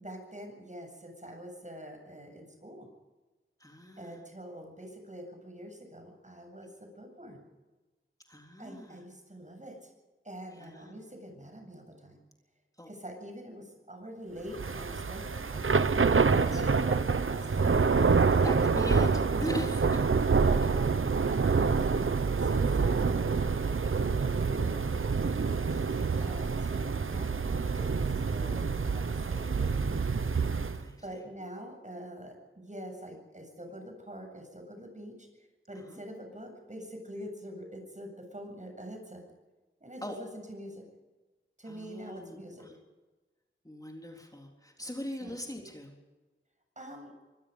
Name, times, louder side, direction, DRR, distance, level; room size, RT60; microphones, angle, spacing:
voice 1, 0.0-2.9 4.0-7.5 8.6-9.8 10.2-12.2 12.9-15.7 16.4-18.5 19.3-19.7 20.4-25.1 26.2-30.1 31.0-35.3 35.7-39.2 39.8-40.8 41.6-42.7 45.2-45.4 46.8-47.1, equal, 35° right, 3 dB, 8.0 m, -45 dB
voice 2, 3.6-4.2 6.6-6.7 8.3-9.1 10.5-11.0 12.8-12.9 16.3-16.6 18.4-19.8 25.7-26.3 30.7-31.2 35.8-36.0 40.0-40.2 41.7-42.8 43.6-45.9, equal, 15° left, 0 dB, 3.9 m, -41 dB
Thunder / Rain, 14.5-30.8, right 5 dB, 75° right, 1.0 m, -27 dB
25.0 x 21.0 x 5.4 m, 1.2 s
wide cardioid pair, 55°, 21 cm